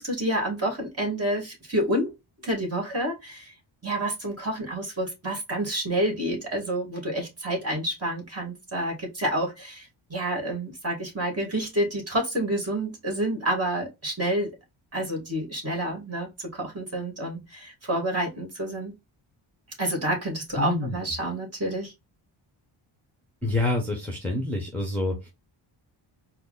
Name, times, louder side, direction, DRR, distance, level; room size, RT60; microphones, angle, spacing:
voice 1, 0.0-2.1 2.4-3.5 3.8-14.5 14.9-18.9 19.8-21.9, right 1 dB, 30° right, 2.1 m, -29 dB
voice 2, 20.6-21.0 23.4-25.3, left 2 dB, 5° left, 1.1 m, -27 dB
4.5 x 2.1 x 3.9 m
wide cardioid pair, 120°, 49 cm